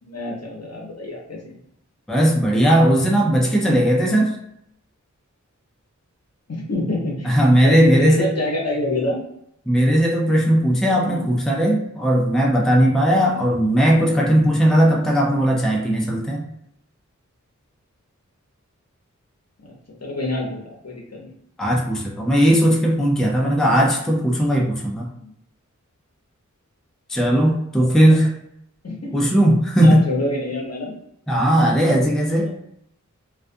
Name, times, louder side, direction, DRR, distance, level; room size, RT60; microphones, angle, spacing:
voice 1, 0.0-1.6 6.5-9.2 11.0-11.3 19.6-19.7 20.0-21.3 25.2-25.3 27.8-28.2 28.8-29.3 29.8-30.9 32.4-32.5, left 1 dB, 55° left, -2 dB, 0.7 m, -27 dB
voice 2, 2.1-4.4 7.2-8.3 9.7-16.5 21.6-25.1 27.1-28.3 29.1-30.0 31.3-32.5, equal, ahead, -1 dB, 0.5 m, -17 dB
2.3 x 2.2 x 2.6 m, 0.76 s
wide cardioid pair, 40°, 31 cm